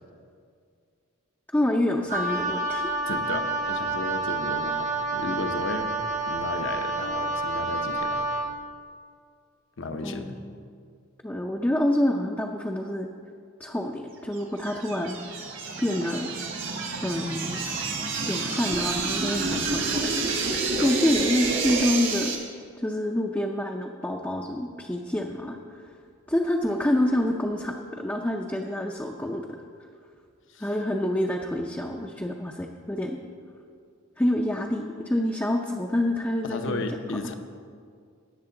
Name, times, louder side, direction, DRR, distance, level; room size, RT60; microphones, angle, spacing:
voice 1, 1.5-2.8 10.0-10.6 11.2-13.1 13.6-15.2 15.8-16.3 16.9-17.6 18.3-20.3 20.8-22.3 22.8-25.8 26.3-29.6 30.6-33.2 34.2-36.8, left 1 dB, 10° left, 1 dB, 0.5 m, -27 dB
Wind instrument woodwind instrument, 2.1-8.5, right 2 dB, 35° right, 0.9 m, -29 dB
voice 2, 3.0-5.9 6.3-8.2 9.8-10.3 19.5-19.8 20.8-20.9 30.5-30.7 36.4-37.3, left 3 dB, 65° left, 6 dB, 0.8 m, -34 dB
sound 1, 14.4-22.4, right 4 dB, 65° right, 1.7 m, -29 dB
18.5 x 6.7 x 3.8 m, 2.2 s
head